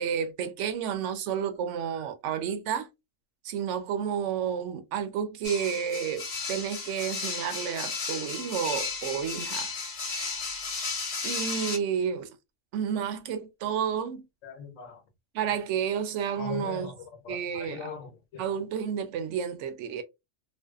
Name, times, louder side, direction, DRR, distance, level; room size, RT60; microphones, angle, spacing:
voice 1, 0.0-2.9 3.4-9.7 11.2-12.4 12.7-14.2 15.3-16.9 17.3-17.9 18.4-20.0, right 8 dB, 75° right, 0.9 m, -31 dB
sound 1, 5.4-11.8, left 4 dB, 55° left, 0.9 m, -34 dB
voice 2, 14.4-15.0 16.4-16.9 17.2-18.5, left 5 dB, 85° left, 1.1 m, -40 dB
2.6 x 2.2 x 2.2 m
omnidirectional pair, 1.3 m